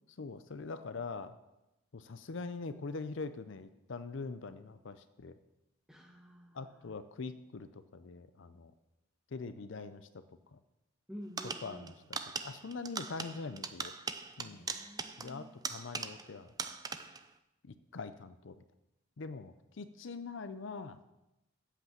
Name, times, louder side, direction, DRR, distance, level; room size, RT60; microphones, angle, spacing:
voice 1, 0.2-1.3 1.9-5.3 6.5-8.7 9.3-10.1 10.5-10.6 11.6-13.9 14.4-14.7 15.2-16.5 17.7-18.5 19.2-21.0, left 4 dB, 65° left, 11 dB, 0.6 m, -43 dB
voice 2, 5.9-7.0 11.1-12.0 14.4-15.4, equal, 5° right, 1 dB, 1.3 m, -50 dB
sound 1, 11.4-16.3 16.6-17.3, right 5 dB, 20° right, 0.5 m, -41 dB
8.5 x 8.1 x 7.3 m, 0.94 s
head